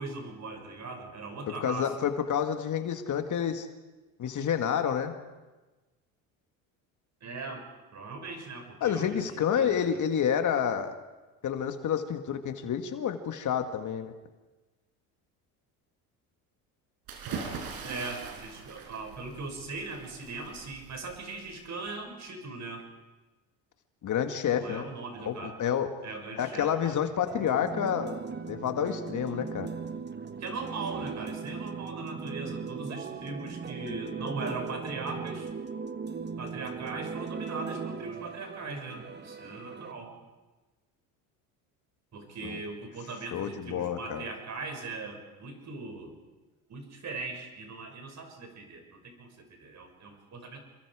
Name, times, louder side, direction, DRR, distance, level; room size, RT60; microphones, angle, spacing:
voice 1, 0.0-1.9 7.2-7.6 7.9-9.2 9.5-9.8 17.8-22.8 24.5-25.6 26.0-27.0 30.4-35.5 36.4-40.1 42.1-46.2 46.7-50.6, right 3 dB, 45° right, 4 dB, 6.4 m, -39 dB
voice 2, 1.6-3.7 4.2-5.1 8.8-10.9 11.4-14.1 24.0-24.9 25.2-25.9 26.3-29.7 42.4-42.6 43.3-44.3, left 8 dB, 50° left, 7 dB, 1.9 m, -29 dB
sound 1, 17.1-21.9, right 5 dB, 65° right, 5.6 m, -42 dB
sound 2, 27.3-39.9, right 5 dB, 25° right, 1.3 m, -38 dB
28.0 x 23.0 x 5.0 m, 1.2 s
supercardioid pair, 85°, 39 cm